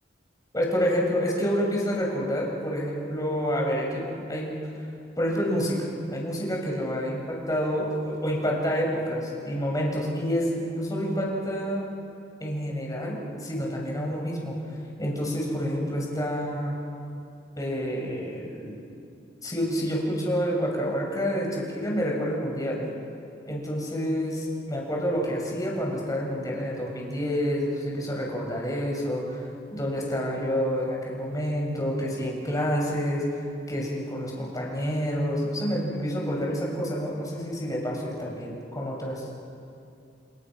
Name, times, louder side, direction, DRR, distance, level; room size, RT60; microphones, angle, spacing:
voice 1, 0.5-4.6 5.2-11.9 12.4-14.5 15.0-16.7 17.6-18.8 19.4-22.8 23.4-29.5 29.7-33.2 33.7-39.3, equal, 20° left, -2 dB, 6.4 m, -28 dB
29.5 x 29.5 x 6.4 m, 2.6 s
head